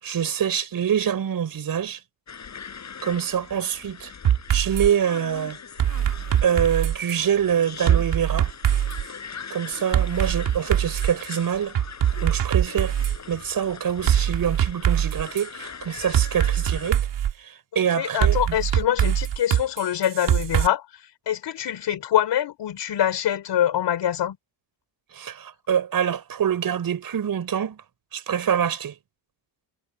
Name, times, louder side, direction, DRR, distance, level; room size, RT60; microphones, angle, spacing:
voice 1, 0.0-2.0 3.0-4.1 4.5-5.6 6.4-8.5 9.5-11.8 12.2-13.0 13.3-17.1 17.4-18.6 25.1-27.8 28.1-29.0, right 8 dB, 50° right, 6.4 m, -25 dB
sound 1, 2.3-16.9, left 6 dB, 35° left, 7.2 m, -41 dB
sound 2, 4.2-4.9 5.8-7.2 7.9-9.0 9.9-11.2 11.7-13.2 14.1-15.5 16.1-17.3 18.2-20.7, right 10 dB, 65° right, 2.9 m, -22 dB
voice 2, 17.7-24.4, left 10 dB, 65° left, 4.2 m, -25 dB
cardioid pair, 150°, 46 cm